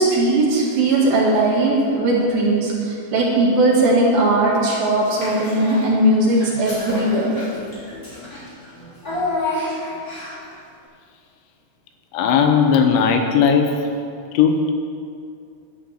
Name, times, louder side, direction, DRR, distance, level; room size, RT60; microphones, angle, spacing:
voice 1, 0.0-7.3, right 2 dB, 60° right, -4 dB, 3.2 m, -18 dB
Child speech kid speaking / Bathtub (filling or washing), 5.0-5.9 6.3-10.5, left 2 dB, 20° left, 3.1 m, -29 dB
voice 2, 12.1-13.9 14.3-14.7, left 6 dB, 80° left, 4 dB, 3.2 m, -17 dB
11.0 x 9.0 x 7.5 m, 2.4 s
omnidirectional pair, 5.5 m